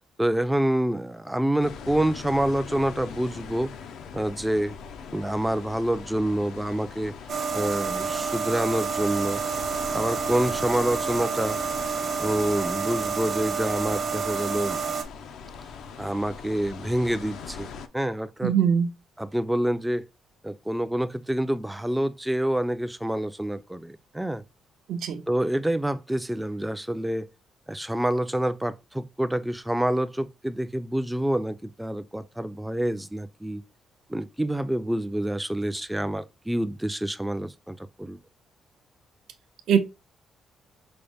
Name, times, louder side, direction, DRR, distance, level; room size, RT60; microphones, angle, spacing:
voice 1, 0.2-3.7 4.1-4.8 5.1-7.1 7.5-9.4 9.9-11.6 12.2-14.8 16.0-18.5 19.2-20.1 20.4-24.4 25.3-27.3 27.7-33.6 34.1-38.2, right 1 dB, 5° right, 0.3 m, -27 dB
sound 1, 1.6-17.9, left 6 dB, 80° left, 0.4 m, -41 dB
sound 2, 7.3-15.0, right 6 dB, 50° right, 0.8 m, -29 dB
voice 2, 18.4-18.9 24.9-25.2 39.7-39.8, right 7 dB, 75° right, 0.5 m, -21 dB
5.2 x 2.1 x 3.3 m
cardioid pair, 90°, 0 cm